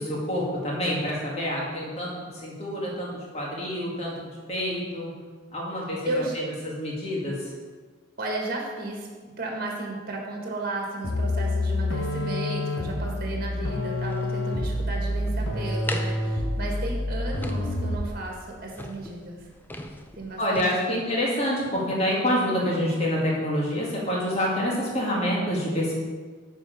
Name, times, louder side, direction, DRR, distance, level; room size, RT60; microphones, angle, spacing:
voice 1, 0.0-4.2 4.5-5.1 5.5-6.0 6.3-7.5 20.4-25.9, equal, 35° left, -4 dB, 2.2 m, -27 dB
voice 2, 6.0-6.4 8.2-9.1 9.4-19.4 20.2-21.0, right 2 dB, 50° right, 0 dB, 1.6 m, -34 dB
sound 1, 11.0-18.2, left 1 dB, 90° left, 1.1 m, -28 dB
sound 2, 14.1-20.7, left 1 dB, 10° left, 0.5 m, -40 dB
7.2 x 4.9 x 6.6 m, 1.5 s
head